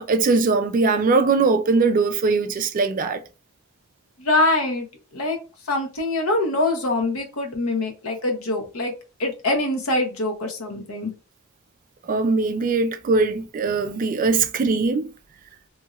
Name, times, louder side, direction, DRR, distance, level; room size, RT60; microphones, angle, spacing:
voice 1, 0.0-3.2 12.1-15.1, right 4 dB, 40° right, 0.3 m, -21 dB
voice 2, 4.2-4.9 5.1-5.4 5.7-8.9 9.2-11.1, left 2 dB, 75° left, 0.8 m, -24 dB
2.7 x 2.4 x 2.9 m
head